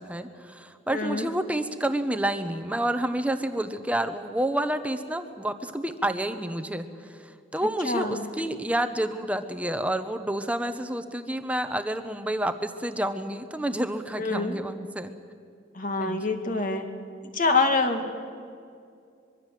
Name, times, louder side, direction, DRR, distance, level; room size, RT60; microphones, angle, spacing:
voice 1, 0.0-15.1 16.0-16.4, right 1 dB, 10° right, 8 dB, 1.0 m, -29 dB
voice 2, 0.9-1.3 7.8-8.3 14.2-14.6 15.7-16.9 17.3-18.1, left 3 dB, 45° left, 6 dB, 2.1 m, -26 dB
24.5 x 22.5 x 7.7 m, 2.4 s
head